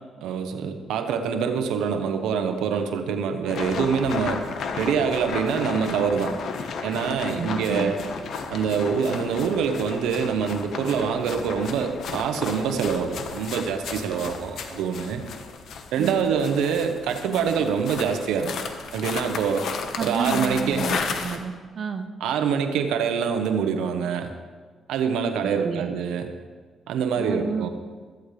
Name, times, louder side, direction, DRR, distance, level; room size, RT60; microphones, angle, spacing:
voice 1, 0.2-4.4 4.8-6.4 6.8-8.0 8.5-15.2 15.9-18.5 18.9-19.7 20.0-20.9 22.2-24.3 24.9-26.3 26.9-27.7, right 6 dB, 90° right, 6 dB, 1.1 m, -25 dB
sound 1, 3.5-21.4, left 5 dB, 70° left, 1.4 m, -33 dB
voice 2, 7.4-7.9 16.0-16.3 20.0-22.1 25.4-25.9 27.2-27.7, right 6 dB, 50° right, 5 dB, 0.9 m, -31 dB
16.0 x 14.5 x 3.4 m, 1.5 s
cardioid pair, 90°, 0 cm